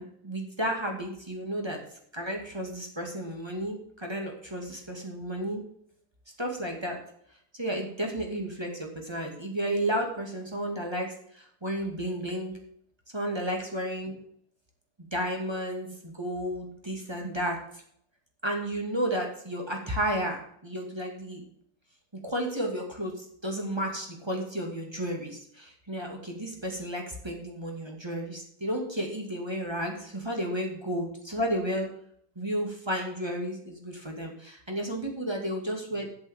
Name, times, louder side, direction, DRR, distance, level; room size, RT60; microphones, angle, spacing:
voice 1, 0.0-1.8 2.1-5.6 6.4-7.0 7.6-12.6 13.1-14.1 15.1-17.6 18.4-21.4 22.2-31.9 32.4-36.1, equal, 15° right, 1 dB, 2.3 m, -32 dB
8.7 x 7.6 x 7.5 m, 0.66 s
omnidirectional pair, 2.0 m